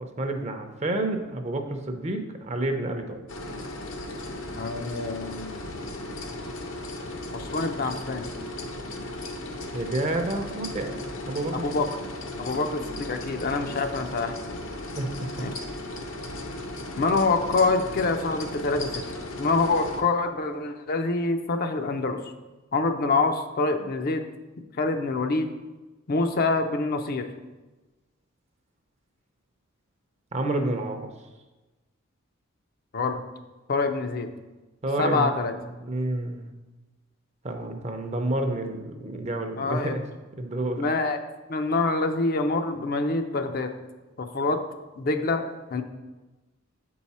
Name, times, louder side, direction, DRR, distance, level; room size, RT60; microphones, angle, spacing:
voice 1, 0.0-3.2 9.7-11.7 15.0-15.4 30.3-31.1 34.8-35.5 35.8-36.5 37.4-40.1 40.4-40.8, right 1 dB, 35° right, 5 dB, 0.6 m, -29 dB
sound 1, 3.3-20.0, left 1 dB, 70° left, 0.8 m, -36 dB
voice 2, 4.6-5.6 7.3-8.2 11.6-11.9 12.4-14.3 15.4-15.5 17.0-19.0 19.4-22.2 22.7-24.2 24.8-25.5 26.1-27.3 32.9-33.2 33.7-34.3 35.0-35.5 39.6-39.9 40.8-41.2 41.5-43.7 44.2-44.6 45.0-45.4 45.7-45.8, left 3 dB, 45° left, 6 dB, 0.5 m, -26 dB
7.6 x 4.7 x 4.2 m, 1.2 s
head